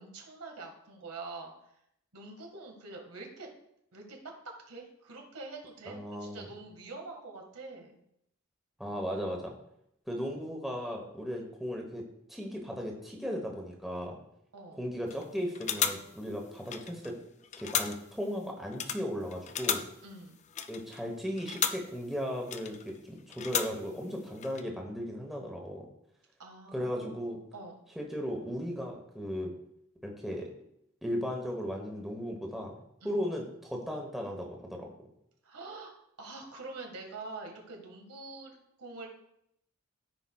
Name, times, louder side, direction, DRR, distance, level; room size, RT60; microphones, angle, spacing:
voice 1, 0.0-1.7 2.1-3.5 3.9-8.0 14.5-14.8 20.0-20.4 26.4-27.8 33.0-33.2 35.4-39.1, right 3 dB, 90° right, 2 dB, 1.7 m, -45 dB
voice 2, 5.9-6.5 8.8-9.5 10.1-12.0 12.3-14.2 14.8-17.1 17.6-19.8 20.7-25.9 26.7-27.4 28.0-29.5 30.0-30.5 31.0-32.7 33.0-34.9, equal, ahead, 0 dB, 1.0 m, -36 dB
sound 1, 15.1-15.3 15.6-17.2 17.4-18.3 18.7-22.0 22.4-23.0 23.3-24.1 24.4-24.6, left 8 dB, 30° left, 0.3 m, -35 dB
14.0 x 4.9 x 2.3 m, 0.77 s
head